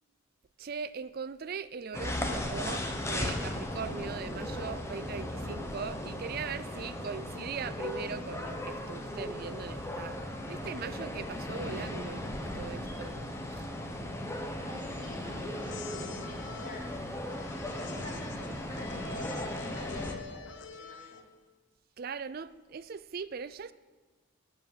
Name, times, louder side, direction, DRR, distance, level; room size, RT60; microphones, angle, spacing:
voice 1, 0.6-10.2 10.5-13.2 13.5-13.7 22.0-23.7, right 6 dB, 45° right, 15 dB, 0.4 m, -40 dB
sound 1, 1.9-20.1, left 1 dB, 15° left, 1.0 m, -37 dB
voice 2, 14.6-16.8 17.7-21.2, left 1 dB, 40° left, -2 dB, 3.0 m, -46 dB
sound 2, 15.5-21.4, left 4 dB, 60° left, 0.7 m, -46 dB
13.0 x 6.2 x 8.6 m, 1.3 s
head